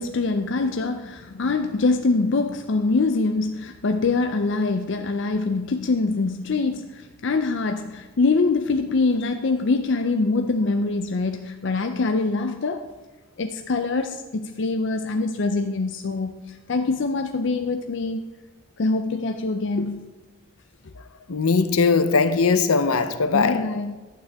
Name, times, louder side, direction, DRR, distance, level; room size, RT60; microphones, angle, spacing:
voice 1, 0.0-12.9 13.4-18.2 18.8-20.1 20.8-20.9 23.3-24.0, left 3 dB, 55° left, 0.5 m, -24 dB
voice 2, 21.3-23.7, left 4 dB, 90° left, 0.8 m, -20 dB
11.5 x 8.8 x 3.5 m
head